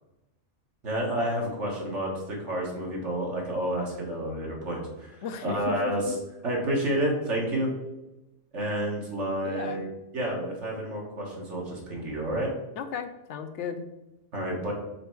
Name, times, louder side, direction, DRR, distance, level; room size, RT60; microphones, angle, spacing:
voice 1, 0.8-6.1 6.4-7.7 8.5-9.9 10.1-12.5 14.3-14.7, right 1 dB, 70° right, -1 dB, 1.9 m, -30 dB
voice 2, 5.2-5.8 6.1-6.2 9.4-9.9 12.8-13.9, left 7 dB, 75° left, 8 dB, 0.9 m, -35 dB
5.0 x 4.4 x 4.6 m, 0.98 s
omnidirectional pair, 1.2 m